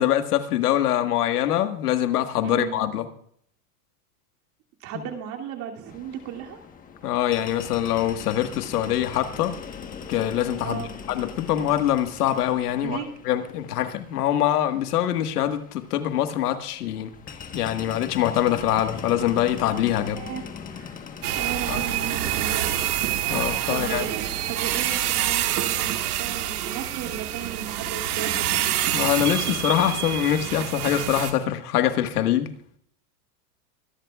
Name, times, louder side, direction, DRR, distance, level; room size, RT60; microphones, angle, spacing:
voice 1, 0.0-3.1 7.0-9.6 10.1-17.1 17.5-20.2 21.7-21.8 23.3-24.1 28.9-32.5, left 11 dB, 90° left, 1.7 m, -24 dB
voice 2, 2.4-2.8 4.8-6.6 10.6-10.9 12.8-13.1 20.2-20.5 20.7-21.0 21.4-22.8 23.7-28.4, right 9 dB, 40° right, 2.8 m, -35 dB
sound 1, 5.9-25.7, left 6 dB, 20° left, 1.3 m, -42 dB
sound 2, 21.2-31.3, right 11 dB, 90° right, 2.0 m, -27 dB
25.0 x 11.5 x 2.4 m
supercardioid pair, 145°, 45 cm